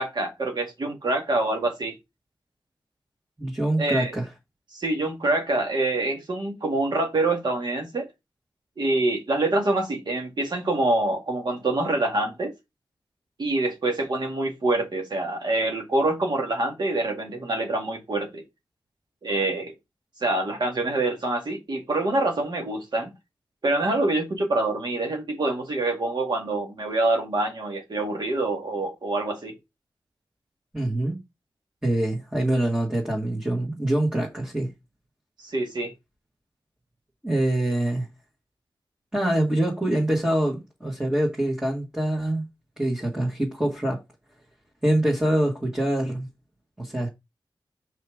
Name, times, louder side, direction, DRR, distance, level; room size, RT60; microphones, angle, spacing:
voice 1, 0.0-2.0 3.8-4.1 4.7-8.1 8.8-12.5 13.4-18.4 19.2-19.7 20.2-23.1 23.6-29.5 35.4-35.9, right 2 dB, 60° right, 2.1 m, -26 dB
voice 2, 3.4-4.3 30.7-31.2 31.8-34.7 37.2-38.1 39.1-42.4 42.8-44.0 44.8-46.3 46.8-47.1, right 1 dB, 10° right, 1.9 m, -25 dB
5.6 x 4.7 x 4.9 m
wide cardioid pair, 130°, 9 cm